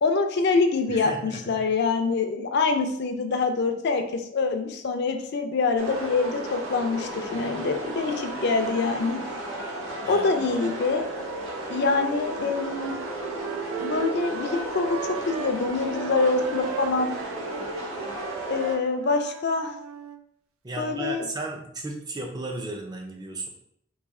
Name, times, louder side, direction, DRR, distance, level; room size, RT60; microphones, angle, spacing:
voice 1, 0.0-9.2 10.1-11.0 11.7-12.9 13.7-17.1 18.5-19.8 20.8-21.3, left 4 dB, 55° left, 6 dB, 0.4 m, -25 dB
voice 2, 0.9-1.6 10.0-10.2 20.6-23.5, right 2 dB, 20° right, 2 dB, 0.5 m, -35 dB
sound 1, 5.8-18.8, right 1 dB, 65° right, 0.9 m, -34 dB
Wind instrument woodwind instrument, 11.7-15.6 15.9-20.2, right 6 dB, 80° right, 0.3 m, -37 dB
3.1 x 2.7 x 3.6 m, 0.74 s
head